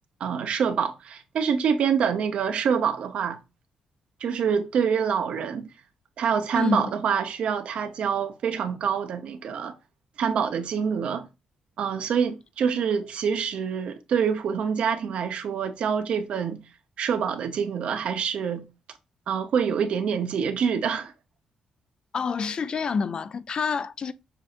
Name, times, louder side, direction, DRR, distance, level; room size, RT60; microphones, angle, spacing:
voice 1, 0.2-3.4 4.2-5.7 6.2-9.7 10.2-11.3 11.8-16.6 17.0-18.7 19.3-21.1, right 7 dB, 70° right, 0.7 m, -26 dB
voice 2, 6.5-6.9 22.1-24.1, left 5 dB, 50° left, 0.4 m, -27 dB
6.8 x 2.7 x 2.5 m
cardioid pair, 85°, 2 cm